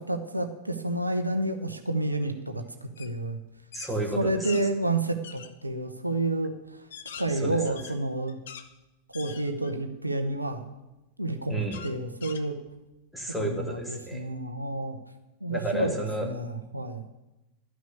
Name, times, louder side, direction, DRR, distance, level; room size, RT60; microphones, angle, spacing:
voice 1, 0.0-3.4 4.2-6.9 7.2-8.4 9.1-10.7 11.2-12.5 13.4-15.0 15.4-15.9 16.2-17.0, right 2 dB, 85° right, 6 dB, 0.9 m, -30 dB
sound 1, 3.0-3.2 3.5-4.7 5.2-5.5 6.1-6.2 6.7-8.7 9.1-9.8 10.4-10.5 11.7-12.9, left 8 dB, 60° left, 0.9 m, -44 dB
voice 2, 3.7-4.4 7.3-7.6 11.5-11.8 13.1-14.3 15.5-16.3, right 1 dB, ahead, 0 dB, 2.1 m, -32 dB
12.5 x 6.3 x 8.3 m, 0.98 s
figure-of-eight pair, 90°, 0 cm